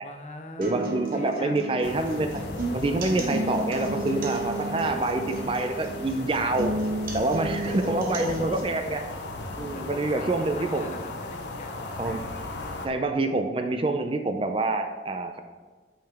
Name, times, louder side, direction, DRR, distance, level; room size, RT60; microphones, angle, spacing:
voice 1, 0.0-1.6 7.5-8.6 9.6-11.9, left 2 dB, 40° left, 4 dB, 0.7 m, -39 dB
voice 2, 0.6-2.4 2.7-6.7 7.1-9.0 9.6-11.0 12.0-12.2 12.8-15.4, right 2 dB, 30° right, 6 dB, 0.5 m, -27 dB
sound 1, 0.6-8.6, right 1 dB, 55° right, 1.2 m, -33 dB
sound 2, 1.8-12.9, left 2 dB, 85° left, 0.7 m, -37 dB
8.6 x 5.6 x 3.5 m, 1.4 s
head